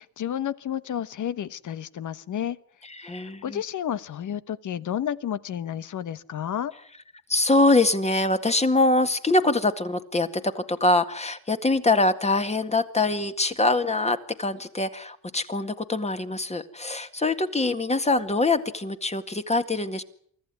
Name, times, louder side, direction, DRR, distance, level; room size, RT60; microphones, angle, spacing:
voice 1, 0.0-2.6 3.0-3.2 3.4-6.7, left 10 dB, 55° left, 15 dB, 1.2 m, -31 dB
voice 2, 3.0-3.6 7.3-20.0, left 2 dB, 15° left, 9 dB, 1.9 m, -24 dB
24.5 x 14.5 x 9.7 m, 0.65 s
cardioid pair, 105°, 37 cm